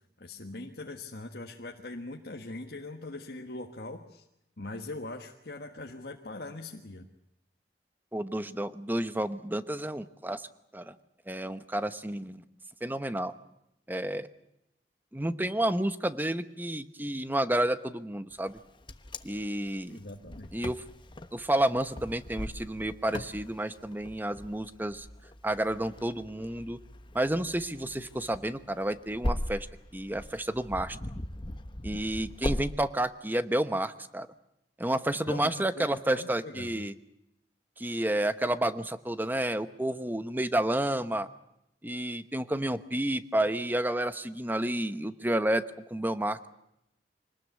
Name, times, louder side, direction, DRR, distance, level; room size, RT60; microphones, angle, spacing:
voice 1, 0.2-4.3 4.6-7.1 19.9-20.5 35.3-36.9, left 2 dB, 60° left, 2 dB, 1.5 m, -41 dB
voice 2, 8.1-10.5 10.7-10.9 11.3-12.4 12.8-13.3 13.9-14.3 15.1-18.6 19.2-20.0 20.5-20.8 21.3-25.1 25.4-26.8 27.1-29.7 29.9-31.0 31.8-34.3 34.8-36.9 37.8-41.3 41.8-45.6 45.9-46.5, right 1 dB, 10° right, 12 dB, 1.0 m, -30 dB
Wind, 18.5-32.7, left 1 dB, 25° left, 1.1 m, -39 dB
25.0 x 19.5 x 8.2 m, 0.84 s
head